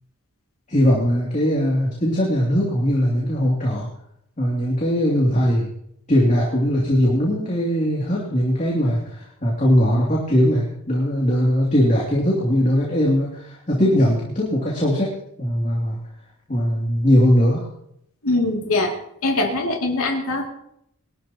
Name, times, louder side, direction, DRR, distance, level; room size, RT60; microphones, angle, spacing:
voice 1, 0.7-3.9 4.4-5.7 6.1-15.1 15.4-16.0 16.5-17.7, equal, 35° left, -5 dB, 2.8 m, -20 dB
voice 2, 18.2-18.9 19.2-20.5, left 2 dB, 85° left, 1 dB, 2.7 m, -22 dB
22.5 x 13.0 x 3.0 m, 0.74 s
head